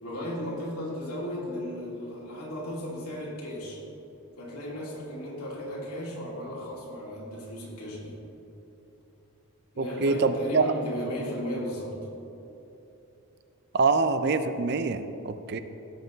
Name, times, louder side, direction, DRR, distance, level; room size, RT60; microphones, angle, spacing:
voice 1, 0.0-3.8 4.4-8.2 9.7-11.9, equal, 85° left, -4 dB, 2.7 m, -35 dB
voice 2, 9.8-10.7 13.7-15.6, right 4 dB, 45° right, 10 dB, 0.5 m, -25 dB
16.5 x 6.6 x 3.9 m, 3.0 s
head